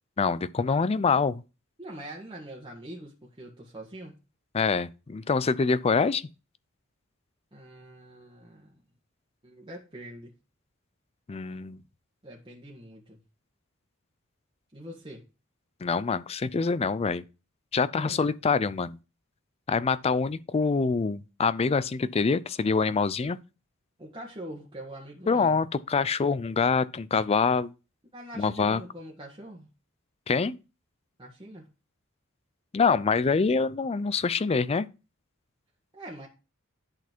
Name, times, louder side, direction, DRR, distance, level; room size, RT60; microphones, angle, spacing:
voice 1, 0.2-1.4 4.5-6.3 11.3-11.8 15.8-17.2 17.7-19.0 19.7-23.4 25.3-27.7 28.4-28.8 30.3-30.6 32.7-34.9, left 4 dB, 30° left, 0.4 m, -25 dB
voice 2, 1.8-4.2 7.5-8.7 9.4-10.3 12.2-13.2 14.7-15.3 18.0-18.3 24.0-25.5 28.1-29.7 31.2-31.7 35.9-36.3, right 1 dB, 25° right, 1.5 m, -43 dB
10.5 x 4.1 x 4.5 m
head